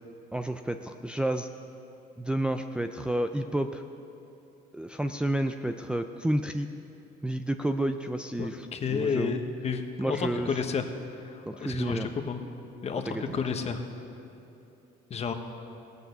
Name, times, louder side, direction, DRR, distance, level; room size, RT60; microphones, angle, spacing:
voice 1, 0.3-1.5 2.2-3.8 4.7-6.7 7.2-9.3 10.0-10.6 11.5-12.1 13.1-13.4, right 1 dB, 5° right, 5 dB, 0.4 m, -30 dB
voice 2, 8.4-10.9 11.1-12.4 12.8-13.8 15.1-15.3, left 5 dB, 40° left, 6 dB, 1.1 m, -31 dB
17.0 x 8.2 x 6.8 m, 2.8 s
cardioid pair, 110°, 17 cm